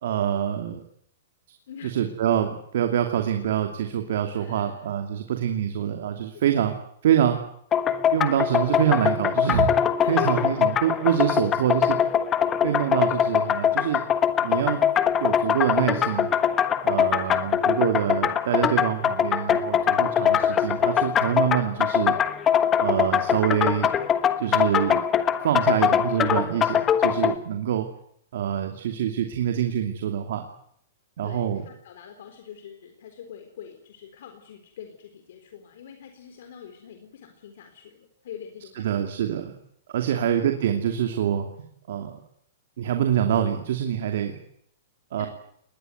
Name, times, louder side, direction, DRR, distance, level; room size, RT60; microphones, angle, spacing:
voice 1, 0.0-0.8 1.8-6.7 7.0-7.4 8.1-9.7 10.1-12.0 12.6-14.0 14.4-14.8 15.2-16.3 16.8-22.1 22.8-23.9 24.4-25.0 25.4-27.9 28.3-30.4 31.2-31.6 38.8-39.5 39.9-41.5 41.9-42.2 42.8-44.4 45.1-45.3, right 10 dB, 60° right, 6 dB, 2.7 m, -25 dB
voice 2, 4.3-4.9 6.6-6.7 10.0-10.6 17.0-17.8 31.2-39.1 40.0-40.3 45.2-45.3, left 8 dB, 60° left, 6 dB, 3.9 m, -42 dB
sound 1, 7.7-27.4, left 9 dB, 15° left, 1.2 m, -22 dB
21.5 x 20.5 x 9.5 m, 0.69 s
hypercardioid pair, 165°, 0 cm